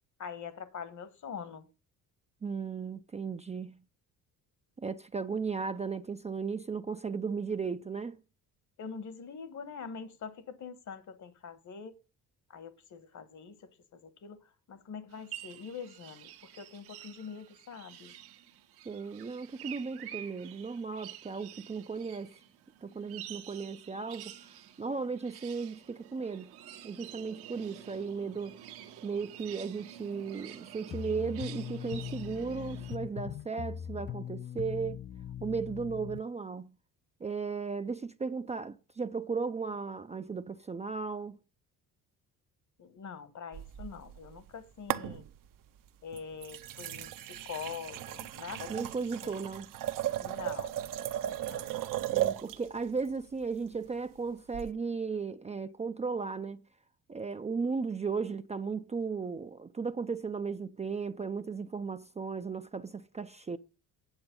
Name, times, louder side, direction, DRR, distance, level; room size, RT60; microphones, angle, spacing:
voice 1, 0.2-1.7 8.8-12.0 12.5-14.4 14.7-18.1 42.8-45.2 46.0-48.9 49.2-49.4 50.2-50.8 51.4-51.7, left 6 dB, 50° left, 1.4 m, -44 dB
voice 2, 2.4-3.8 4.8-8.2 18.9-22.3 22.8-24.4 24.8-26.5 26.8-28.6 29.0-35.0 35.4-36.7 37.2-41.4 48.7-49.7 52.1-56.6 57.1-63.6, right 5 dB, 20° right, 0.5 m, -36 dB
sound 1, 15.1-33.0, right 11 dB, 85° right, 1.4 m, -49 dB
sound 2, 30.9-36.2, left 9 dB, 30° left, 0.5 m, -40 dB
sound 3, 43.5-44.5 44.9-45.6 46.1-52.7 54.5-54.7, right 12 dB, 60° right, 0.8 m, -36 dB
9.0 x 7.1 x 5.3 m
supercardioid pair, 85°, 37 cm